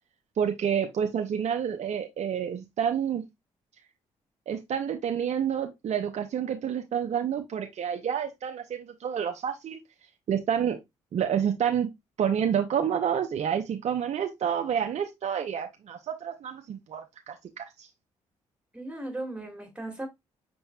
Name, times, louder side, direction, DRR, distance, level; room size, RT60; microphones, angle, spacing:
voice 1, 0.4-3.2 4.5-9.8 10.3-10.8 11.1-11.9 12.2-17.9, right 8 dB, 60° right, 0.7 m, -29 dB
voice 2, 18.7-20.1, right 1 dB, 10° right, 2.2 m, -37 dB
5.6 x 4.0 x 2.3 m
hypercardioid pair, 50°, 13 cm